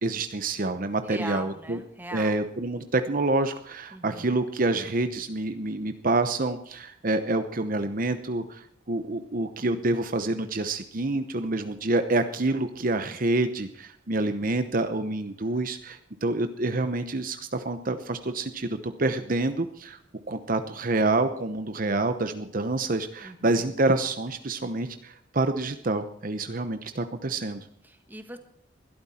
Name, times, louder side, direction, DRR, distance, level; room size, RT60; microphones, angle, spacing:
voice 1, 0.0-1.8 2.1-20.0 20.3-27.7, right 2 dB, 45° right, 9 dB, 0.9 m, -27 dB
voice 2, 1.0-2.4 3.9-4.4 23.2-23.8 27.8-28.4, right 1 dB, 10° right, 6 dB, 1.5 m, -40 dB
21.0 x 12.5 x 4.3 m, 0.68 s
head